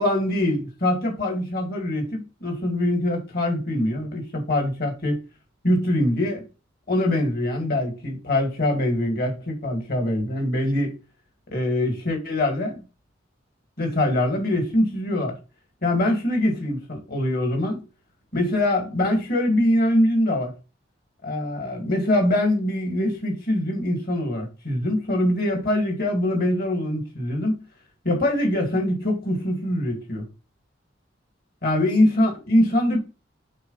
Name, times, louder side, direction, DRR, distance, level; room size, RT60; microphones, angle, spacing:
voice 1, 0.0-5.2 5.6-6.4 6.9-11.0 11.5-12.8 13.8-15.4 15.8-17.8 18.3-20.5 21.2-27.6 28.0-30.2 31.6-33.0, left 1 dB, 55° left, 2.3 m, -23 dB
5.3 x 4.0 x 5.6 m
head